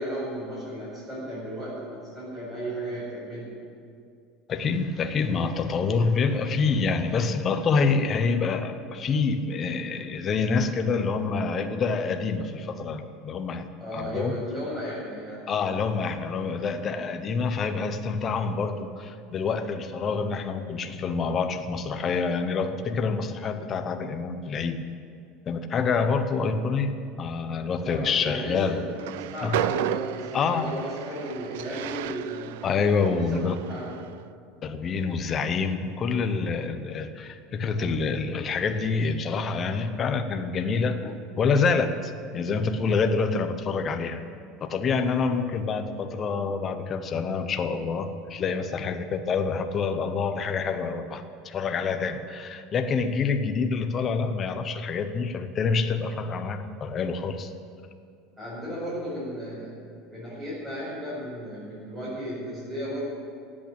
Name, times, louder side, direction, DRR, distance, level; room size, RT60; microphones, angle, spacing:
voice 1, 0.0-3.5 13.8-15.5 27.8-32.6 33.1-34.0 58.4-59.7 60.1-63.0, equal, 10° right, -11 dB, 5.1 m, -34 dB
voice 2, 4.5-14.4 15.5-24.8 25.5-28.8 29.4-29.6 30.3-30.8 32.6-33.6 34.6-44.2 44.6-57.5, left 5 dB, 20° left, 8 dB, 0.8 m, -27 dB
Train, 28.9-34.2, right 14 dB, 75° right, 0.4 m, -34 dB
16.5 x 8.7 x 8.8 m, 2.4 s
cardioid pair, 180°, 0 cm